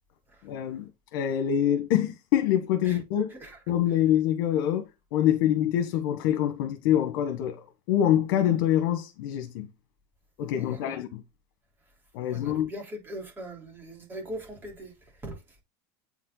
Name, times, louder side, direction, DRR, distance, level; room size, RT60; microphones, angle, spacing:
voice 1, 0.4-3.3 3.7-4.8 5.1-7.6 7.9-9.7 10.4-11.2 12.1-12.7, left 10 dB, 75° left, 1.4 m, -25 dB
voice 2, 10.6-11.0 12.3-14.9 15.2-15.4, right 1 dB, 20° right, 3.9 m, -41 dB
8.5 x 5.4 x 4.0 m
supercardioid pair, 140°, 11 cm